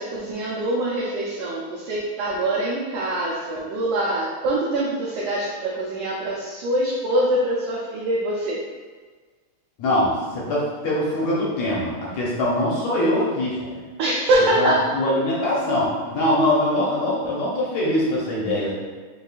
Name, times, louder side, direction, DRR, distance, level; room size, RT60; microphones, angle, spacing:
voice 1, 0.0-8.6 14.0-14.8, right 1 dB, 85° right, -6 dB, 1.4 m, -24 dB
voice 2, 9.8-13.8 14.6-18.7, left 1 dB, 75° left, -5 dB, 1.8 m, -23 dB
5.2 x 2.3 x 2.3 m, 1.4 s
omnidirectional pair, 3.3 m